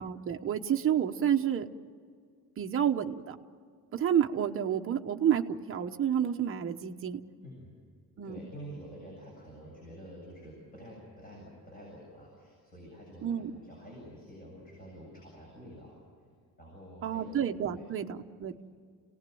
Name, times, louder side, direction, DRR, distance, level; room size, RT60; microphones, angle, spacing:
voice 1, 0.0-1.7 2.6-3.4 3.9-7.2 8.2-8.4 13.2-13.5 17.0-18.5, right 9 dB, 35° right, 5 dB, 1.0 m, -29 dB
voice 2, 7.4-7.7 8.2-16.0 16.6-17.4 17.7-17.8, equal, 25° left, -4 dB, 7.8 m, -48 dB
29.0 x 18.5 x 7.8 m, 2.1 s
cardioid pair, 175°, 37 cm